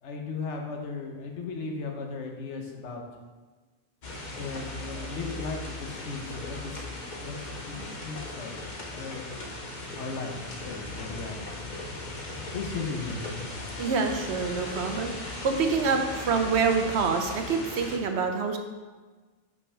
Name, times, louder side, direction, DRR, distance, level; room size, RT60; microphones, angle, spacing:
voice 1, 0.0-3.0 4.3-8.6 8.9-9.3 10.0-11.4 12.5-13.5, left 4 dB, 75° left, 2 dB, 1.2 m, -36 dB
sound 1, 4.0-18.0, left 2 dB, 45° left, 0.9 m, -38 dB
voice 2, 13.8-18.6, right 5 dB, 70° right, 5 dB, 0.9 m, -26 dB
5.5 x 5.4 x 4.8 m, 1.3 s
omnidirectional pair, 1.2 m